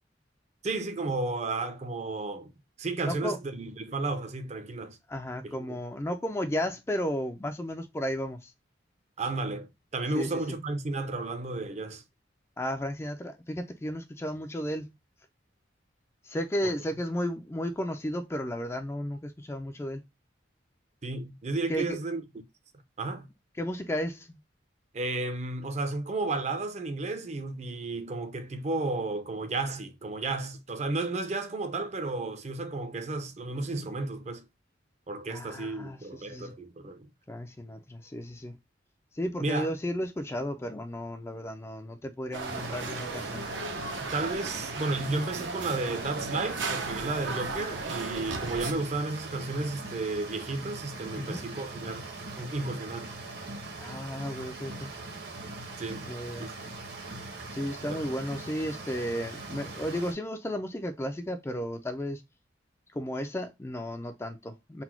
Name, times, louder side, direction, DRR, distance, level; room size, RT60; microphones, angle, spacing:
voice 1, 0.6-2.5 2.8-5.0 5.4-5.8 9.2-12.0 16.6-16.7 21.0-22.2 23.0-23.3 24.9-34.5 35.1-37.1 39.4-39.7 44.1-52.1 52.4-53.1 55.8-56.1 56.4-56.5 57.9-58.0, right 3 dB, 35° right, 0.5 m, -33 dB
voice 2, 3.1-3.4 5.1-8.5 10.1-10.6 12.6-14.9 16.2-20.0 21.7-22.0 23.6-24.4 35.3-36.5 37.3-38.6 39.1-43.5 51.2-51.4 53.8-54.9 56.1-56.5 57.5-62.2 62.9-64.8, equal, 15° left, 0.3 m, -34 dB
sound 1, 42.3-48.7, right 3 dB, 80° right, 0.7 m, -36 dB
sound 2, 42.4-60.1, right 2 dB, 55° right, 0.9 m, -41 dB
4.0 x 2.1 x 4.4 m
head